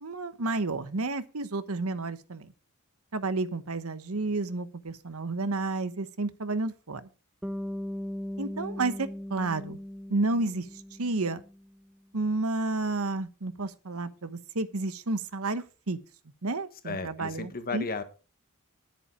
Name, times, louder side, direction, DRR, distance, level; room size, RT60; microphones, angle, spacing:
voice 1, 0.0-2.5 3.1-7.0 8.4-9.8 10.1-10.7 11.0-11.4 12.1-16.0 16.4-17.9, right 3 dB, 70° right, 1.1 m, -31 dB
Bass guitar, 7.4-11.7, left 1 dB, 5° right, 0.6 m, -38 dB
voice 2, 16.8-18.0, left 4 dB, 45° left, 1.5 m, -34 dB
10.5 x 8.9 x 4.9 m
head